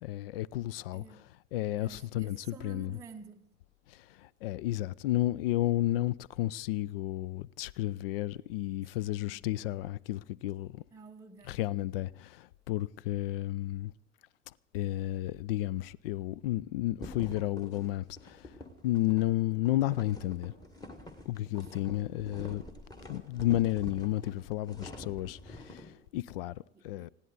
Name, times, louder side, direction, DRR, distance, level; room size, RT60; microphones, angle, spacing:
voice 1, 0.0-1.2 1.5-3.0 3.9-10.8 11.5-13.9 14.7-18.4 18.8-20.5 21.3-22.6 23.1-27.1, left 15 dB, 50° left, 0.5 m, -32 dB
voice 2, 0.9-1.3 1.8-3.5 8.8-8.9 9.2-9.5 10.9-11.7 21.5-21.7 26.7-27.1, right 5 dB, 10° right, 0.7 m, -51 dB
sound 1, 17.0-25.9, left 1 dB, 10° left, 1.7 m, -47 dB
20.0 x 16.0 x 4.0 m
figure-of-eight pair, 80°, 38 cm